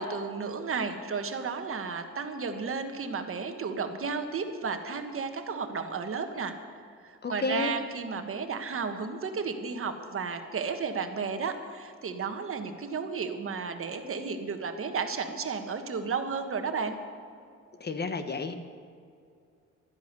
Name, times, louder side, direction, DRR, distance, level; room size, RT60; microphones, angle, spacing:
voice 1, 0.0-6.5 7.0-17.0, right 5 dB, 45° right, 7 dB, 1.4 m, -33 dB
voice 2, 7.2-7.7 17.8-18.5, left 4 dB, 35° left, 9 dB, 1.1 m, -31 dB
12.5 x 10.5 x 8.2 m, 2.4 s
cardioid pair, 90°, 30 cm